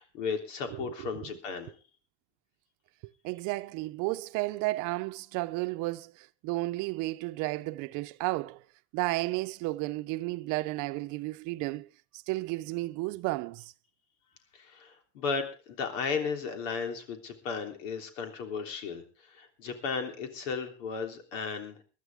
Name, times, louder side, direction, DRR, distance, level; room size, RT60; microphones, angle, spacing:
voice 1, 0.0-1.7 14.5-21.8, left 5 dB, 85° left, 3.5 m, -35 dB
voice 2, 3.2-8.6 8.9-11.9 12.1-13.7, right 20 dB, 55° right, 0.8 m, -33 dB
21.5 x 12.5 x 3.6 m
supercardioid pair, 125°, 37 cm